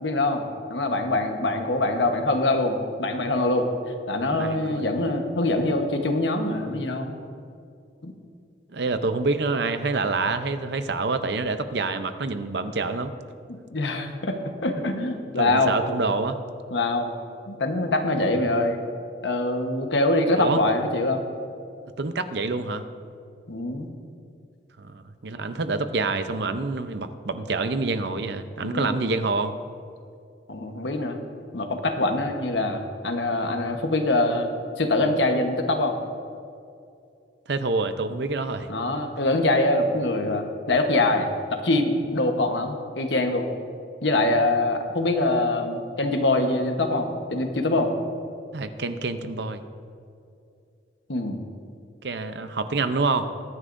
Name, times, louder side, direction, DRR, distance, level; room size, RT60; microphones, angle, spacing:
voice 1, 0.0-3.7 4.1-7.2 8.0-8.1 13.5-15.8 16.7-17.1 17.5-18.8 19.2-21.2 23.5-23.9 28.6-29.0 30.5-31.2 31.5-34.5 34.8-36.0 38.7-43.5 44.0-47.9 51.1-51.4, left 2 dB, 90° left, 5 dB, 1.2 m, -24 dB
voice 2, 4.4-4.9 8.7-13.1 15.4-16.4 20.4-20.6 22.0-22.8 24.8-29.6 37.5-38.7 48.5-49.6 52.0-53.3, right 3 dB, 70° right, 10 dB, 0.7 m, -27 dB
22.0 x 9.9 x 2.6 m, 2.5 s
head